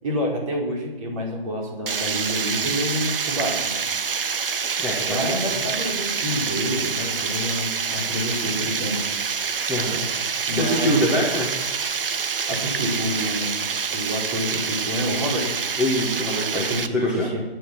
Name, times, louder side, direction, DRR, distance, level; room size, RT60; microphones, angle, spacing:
voice 1, 0.0-3.7 5.0-9.0 10.5-11.0 12.5-13.6 13.9-15.5 16.5-17.4, equal, 35° right, -1 dB, 5.3 m, -28 dB
Water, 1.9-16.9, right 6 dB, 65° right, 1.2 m, -27 dB
voice 2, 4.8-5.2 5.5-5.6 9.7-10.1 10.6-11.5 15.8-16.7 16.9-17.3, left 1 dB, 5° right, -6 dB, 1.8 m, -24 dB
21.5 x 9.5 x 6.3 m, 1.2 s
hypercardioid pair, 160°, 30 cm